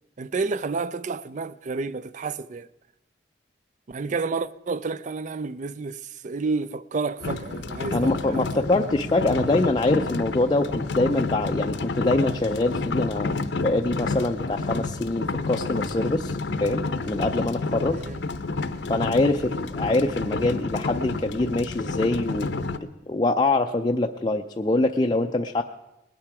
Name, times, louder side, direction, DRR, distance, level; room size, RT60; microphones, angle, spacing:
voice 1, 0.2-2.7 3.9-8.7 17.8-18.2, right 4 dB, 40° right, 0.4 m, -30 dB
sound 1, 7.2-22.8, left 3 dB, 70° left, 0.7 m, -30 dB
voice 2, 7.9-18.0 18.9-22.7 23.1-25.6, left 2 dB, 25° left, 0.4 m, -24 dB
20.0 x 8.9 x 4.8 m
head